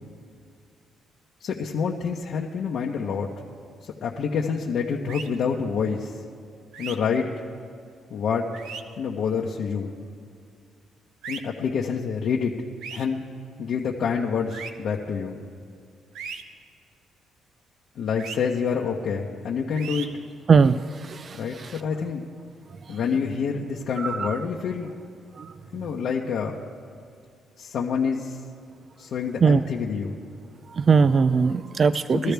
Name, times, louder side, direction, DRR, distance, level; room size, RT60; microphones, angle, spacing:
voice 1, 1.4-3.3 3.8-6.2 6.8-7.3 8.1-8.5 9.0-9.9 11.3-12.5 12.9-13.2 13.6-15.4 17.9-20.1 21.3-22.2 22.9-24.9 25.7-26.7 27.6-28.4 29.0-30.1 32.1-32.3, left 6 dB, 70° left, -3 dB, 1.0 m, -27 dB
sound 1, 5.1-5.3 6.7-7.0 8.5-8.8 11.2-11.4 12.8-13.1 14.5-14.7 16.2-16.4 18.2-18.4 19.8-20.1, right 6 dB, 85° right, 0.8 m, -36 dB
voice 2, 20.5-21.7 24.0-24.4 25.4-25.5 29.4-29.6 30.7-32.3, right 5 dB, 45° right, 14 dB, 0.4 m, -20 dB
22.5 x 13.5 x 3.5 m, 2.3 s
cardioid pair, 90°, 0 cm